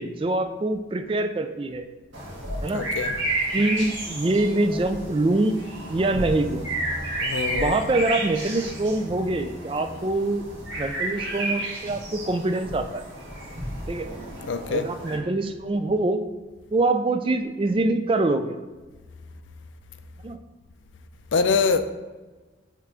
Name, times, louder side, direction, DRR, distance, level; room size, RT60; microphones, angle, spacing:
voice 1, 0.0-1.9 2.6-2.8 3.5-5.6 5.9-6.7 7.5-10.4 10.8-13.0 13.9-14.1 14.7-16.2 16.7-18.6 20.2-20.4, right 2 dB, 25° right, 0.3 m, -24 dB
sound 1, 2.1-15.2, right 1 dB, 80° right, 1.9 m, -32 dB
voice 2, 2.7-3.1 7.2-7.8 14.4-14.9 21.3-21.8, left 5 dB, 80° left, 0.4 m, -24 dB
7.4 x 3.5 x 3.8 m
head